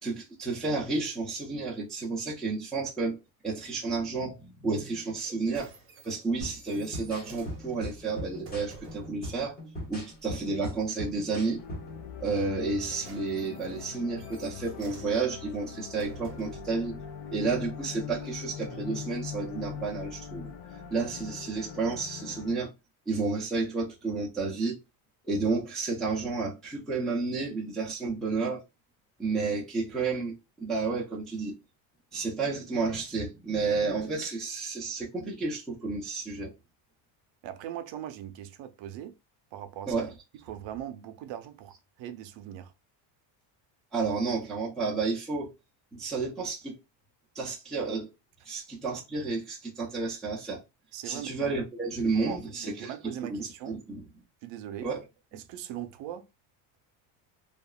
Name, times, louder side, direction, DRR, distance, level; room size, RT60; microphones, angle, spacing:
voice 1, 0.0-3.2 3.4-5.7 6.0-9.6 9.9-11.6 12.2-17.0 17.3-20.5 20.9-22.7 23.1-24.8 25.2-28.6 29.2-31.6 32.1-36.5 39.9-40.1 43.9-45.5 45.9-46.8 47.3-48.1 48.4-50.6 51.0-52.9 53.3-54.0 54.8-55.0, right 4 dB, ahead, 0.3 m, -31 dB
sound 1, 5.1-9.2 12.6-16.8 17.5-17.6, right 4 dB, 25° right, 0.7 m, -50 dB
sound 2, 6.4-12.0, equal, 20° left, 1.0 m, -40 dB
sound 3, 11.6-22.5, left 7 dB, 60° left, 0.6 m, -42 dB
voice 2, 37.4-39.2 39.5-40.1 40.5-42.7 50.9-51.4 52.3-53.9 54.4-54.9 55.3-56.3, right 11 dB, 65° right, 0.6 m, -40 dB
2.8 x 2.3 x 2.3 m
cardioid pair, 155°, 49 cm